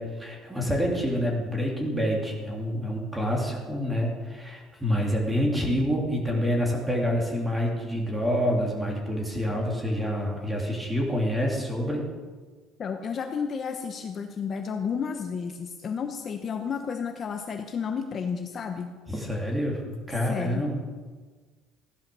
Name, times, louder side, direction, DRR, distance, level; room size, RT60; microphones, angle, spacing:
voice 1, 0.0-12.0 19.1-19.8 20.1-20.8, equal, 10° right, -1 dB, 3.2 m, -27 dB
voice 2, 12.8-18.9 20.3-20.6, left 6 dB, 30° left, 5 dB, 1.0 m, -32 dB
16.0 x 11.0 x 6.9 m, 1.4 s
cardioid pair, 155°, 0 cm